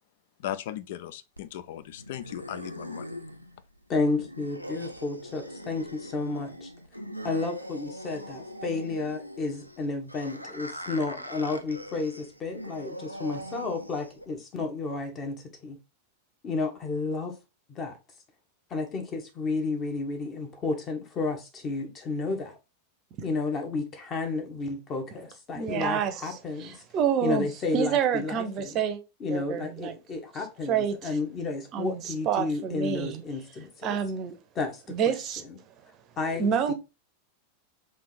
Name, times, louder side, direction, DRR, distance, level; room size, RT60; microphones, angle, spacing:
voice 1, 0.4-3.1, left 11 dB, 55° left, 0.4 m, -37 dB
sound 1, 1.4-14.4, equal, 90° right, 0.4 m, -41 dB
voice 2, 3.9-6.7 7.2-15.8 16.4-17.4 17.7-18.0 18.7-22.6 23.2-26.8 27.2-28.8 29.2-34.0 34.5-35.1 35.5-35.6 36.2-36.7, left 3 dB, 30° left, 1.1 m, -32 dB
voice 3, 25.5-27.5 27.7-29.0 29.3-29.9 30.7-31.0 31.7-33.2 33.8-34.4 34.9-35.4 36.3-36.7, right 8 dB, 35° right, 0.7 m, -28 dB
3.5 x 2.7 x 4.3 m
figure-of-eight pair, 90°, 0 cm